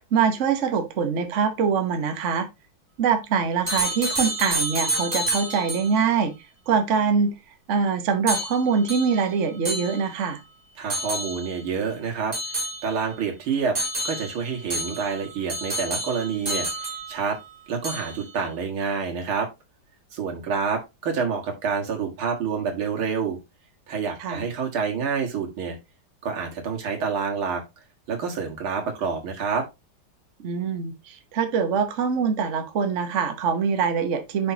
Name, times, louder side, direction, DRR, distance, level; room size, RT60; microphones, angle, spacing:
voice 1, 0.0-2.5 3.0-6.3 6.7-7.3 7.7-10.4 24.2-24.5 30.4-34.5, right 6 dB, 45° right, 1.1 m, -24 dB
sound 1, 3.7-6.0 8.3-10.4 10.9-11.7 12.3-13.2 13.7-17.5 17.8-18.4, right 1 dB, 25° right, 2.6 m, -30 dB
voice 2, 10.8-12.4 12.8-13.8 14.0-17.4 17.7-19.5 20.1-23.4 23.9-25.8 26.2-27.6 28.1-29.7, right 5 dB, 85° right, 2.6 m, -28 dB
10.0 x 5.1 x 2.8 m
omnidirectional pair, 2.2 m